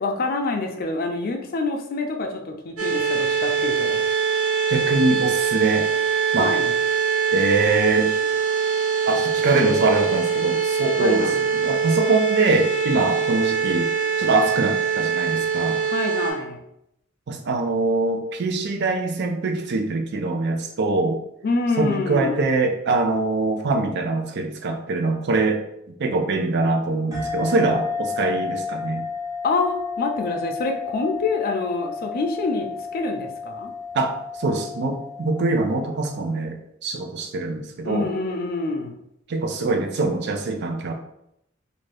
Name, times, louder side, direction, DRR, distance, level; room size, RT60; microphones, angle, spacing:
voice 1, 0.0-4.0 6.4-6.7 11.0-11.4 15.8-16.6 21.4-22.5 29.4-33.7 37.8-38.9, left 3 dB, 45° left, 3 dB, 0.5 m, -26 dB
sound 1, 2.8-16.3, right 6 dB, 80° right, 0.9 m, -23 dB
voice 2, 4.7-5.9 6.3-6.5 7.3-8.1 9.1-13.9 14.2-15.8 17.3-21.2 21.8-25.6 26.0-29.0 33.9-38.1 39.3-40.9, right 3 dB, 60° right, 5 dB, 0.4 m, -23 dB
sound 2, 27.1-36.2, left 5 dB, 15° right, 0.7 m, -32 dB
2.6 x 2.5 x 3.3 m, 0.79 s
head